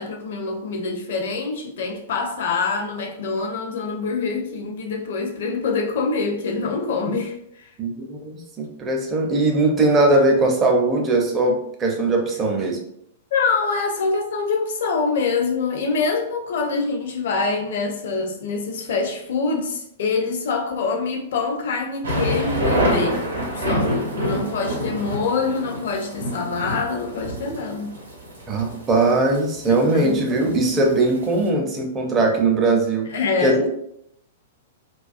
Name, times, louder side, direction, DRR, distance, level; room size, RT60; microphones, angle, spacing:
voice 1, 0.0-7.7 13.3-23.3 23.5-28.0 29.6-30.2 33.1-33.7, left 4 dB, 60° left, 0.5 m, -25 dB
voice 2, 7.8-12.8 28.5-33.1 33.4-33.7, right 2 dB, 20° right, 0.5 m, -20 dB
sound 1, 22.0-31.4, equal, 80° right, 0.7 m, -27 dB
2.3 x 2.2 x 2.4 m
figure-of-eight pair, 105°, 0 cm